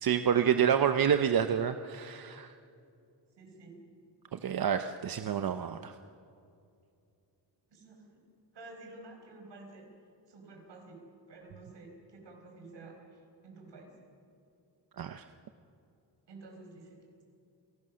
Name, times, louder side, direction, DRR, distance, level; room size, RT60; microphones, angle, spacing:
voice 1, 0.0-2.5 4.3-5.9 15.0-15.2, right 8 dB, 55° right, 8 dB, 0.8 m, -28 dB
voice 2, 3.4-3.8 7.7-8.2 8.5-9.9 10.3-13.9 16.3-17.0, right 2 dB, 80° right, 2 dB, 5.0 m, -51 dB
28.5 x 18.5 x 6.3 m, 2.5 s
wide cardioid pair, 140°, 42 cm